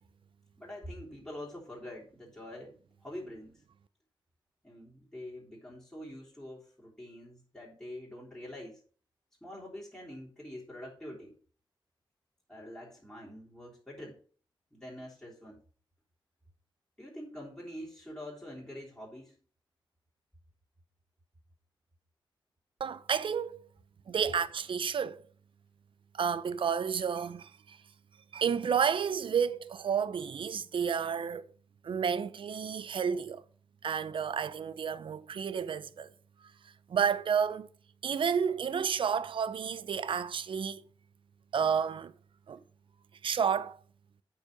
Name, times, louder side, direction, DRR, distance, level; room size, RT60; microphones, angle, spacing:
voice 1, 0.6-3.6 4.6-8.8 9.4-11.4 12.5-14.2 14.7-15.6 17.0-19.4, left 1 dB, 5° left, 3.5 m, -45 dB
voice 2, 22.8-23.6 24.1-25.2 26.1-27.8 28.3-31.5 31.8-33.4 33.8-36.1 36.9-37.7 38.0-40.8 41.5-42.1 42.5-42.6 43.2-43.8, right 7 dB, 70° right, 0.6 m, -31 dB
8.5 x 5.6 x 5.2 m
cardioid pair, 85°, 9 cm